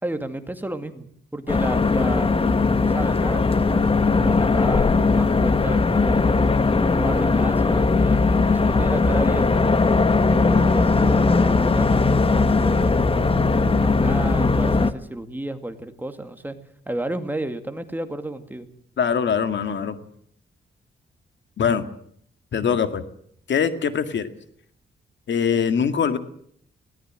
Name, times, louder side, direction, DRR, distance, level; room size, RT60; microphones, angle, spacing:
voice 1, 0.0-2.4 2.8-6.3 6.8-9.8 10.3-13.0 13.4-16.6 16.9-18.7, right 1 dB, 10° right, 7 dB, 2.2 m, -32 dB
sound 1, 1.5-14.9, left 3 dB, 30° left, 1.3 m, -19 dB
voice 2, 19.0-20.0 21.6-21.8 22.5-23.0 23.5-24.3 25.3-26.2, left 7 dB, 65° left, 10 dB, 2.0 m, -22 dB
20.0 x 18.0 x 7.7 m, 0.64 s
cardioid pair, 110°, 20 cm